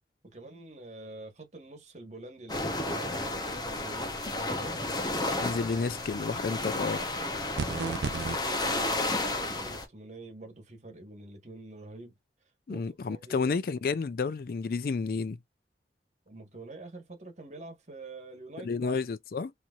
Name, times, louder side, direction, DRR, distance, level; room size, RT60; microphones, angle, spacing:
voice 1, 0.2-4.8 7.3-12.2 12.7-13.5 16.3-19.0, right 2 dB, 40° right, 1.4 m, -46 dB
sound 1, 2.5-9.9, left 2 dB, 25° left, 0.8 m, -32 dB
voice 2, 5.4-7.0 12.7-15.4 18.6-19.5, left 4 dB, 55° left, 0.4 m, -31 dB
sound 2, 7.6-8.4, right 4 dB, 80° right, 0.5 m, -32 dB
4.1 x 3.0 x 2.4 m
head